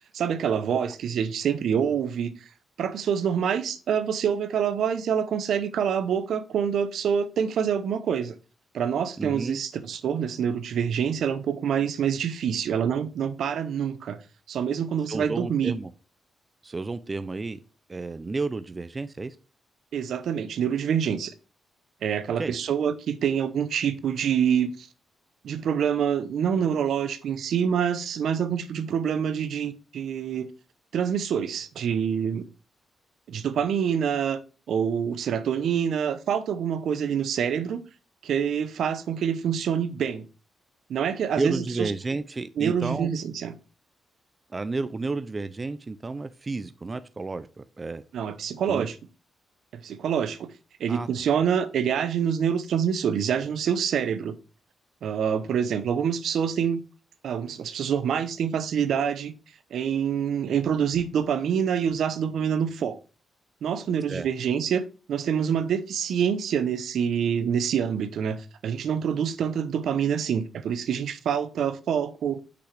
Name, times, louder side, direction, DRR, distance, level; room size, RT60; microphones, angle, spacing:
voice 1, 0.1-2.4 2.8-8.3 8.7-14.2 14.5-15.7 19.9-21.3 22.0-24.9 25.4-30.5 30.9-32.4 33.3-34.4 34.7-37.8 38.2-40.2 40.9-41.9 42.6-43.5 48.1-48.9 49.7-50.5 50.8-54.4 55.0-56.8 57.2-59.3 59.7-63.0 63.6-72.4, right 8 dB, 75° right, 0.8 m, -26 dB
voice 2, 9.2-9.6 15.1-15.9 16.6-17.6 17.9-19.4 22.4-22.6 41.4-43.1 44.5-48.0 48.6-48.9 50.9-51.1 64.1-64.3, right 3 dB, 25° right, 0.4 m, -31 dB
6.2 x 5.7 x 3.3 m
cardioid pair, 115°, 0 cm